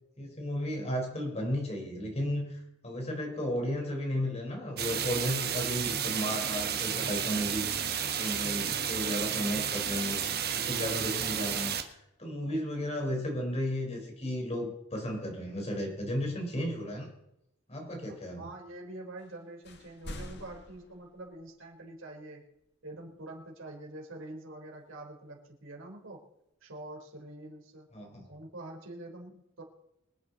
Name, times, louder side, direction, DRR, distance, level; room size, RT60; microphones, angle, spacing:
voice 1, 0.2-7.7 8.1-10.2 10.5-17.1 17.7-18.5 27.9-28.2, equal, 35° left, 1 dB, 4.6 m, -34 dB
sound 1, 4.8-11.8, right 8 dB, 55° right, 1.4 m, -32 dB
voice 2, 18.1-22.4 22.8-26.2 26.6-27.9 28.3-29.6, right 2 dB, 85° right, 0 dB, 3.9 m, -45 dB
sound 2, 19.2-19.4 19.6-21.7, left 1 dB, 60° left, 1.8 m, -46 dB
25.0 x 9.6 x 4.2 m, 0.84 s
head